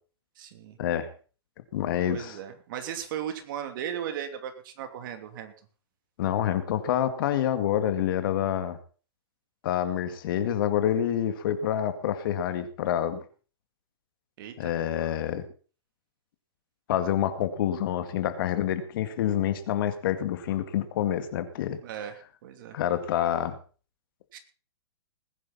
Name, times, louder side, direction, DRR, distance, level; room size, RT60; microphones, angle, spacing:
voice 1, 0.4-0.8 2.1-5.5 14.4-14.7 21.8-22.8 24.3-24.4, right 9 dB, 50° right, 6 dB, 2.9 m, -37 dB
voice 2, 1.7-2.4 6.2-8.8 9.6-13.2 14.6-15.4 16.9-21.8 22.7-23.5, left 10 dB, 50° left, 9 dB, 2.0 m, -27 dB
20.0 x 10.5 x 4.2 m, 0.39 s
hypercardioid pair, 145°, 14 cm